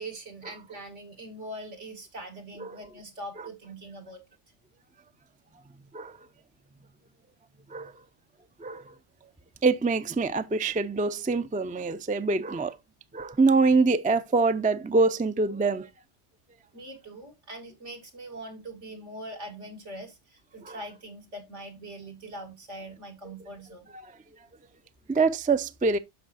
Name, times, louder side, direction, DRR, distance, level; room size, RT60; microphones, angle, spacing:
voice 1, 0.0-4.2 16.7-23.9, right 1 dB, 80° right, 2.6 m, -42 dB
voice 2, 8.6-8.9 9.6-12.8 13.1-15.9 20.6-20.7 25.1-26.0, right 3 dB, 15° right, 0.3 m, -25 dB
12.0 x 5.4 x 2.5 m
omnidirectional pair, 1.2 m